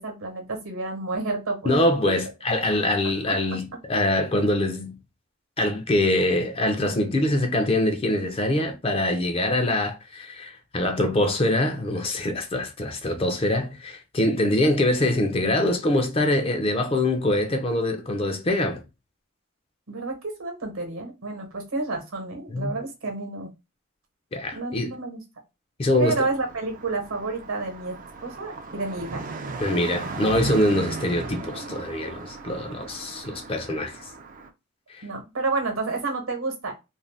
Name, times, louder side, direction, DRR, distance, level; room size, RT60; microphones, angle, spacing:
voice 1, 0.0-1.9 3.0-3.1 19.9-23.5 24.5-25.2 26.0-29.2 35.0-36.7, right 3 dB, 75° right, 1.0 m, -30 dB
voice 2, 1.7-5.0 5.6-18.8 22.5-22.7 24.3-24.9 25.8-26.2 29.6-34.1 34.9-35.0, left 1 dB, 25° left, 0.4 m, -24 dB
Car passing by, 25.9-34.5, right 3 dB, 40° right, 0.3 m, -36 dB
2.6 x 2.1 x 3.2 m
head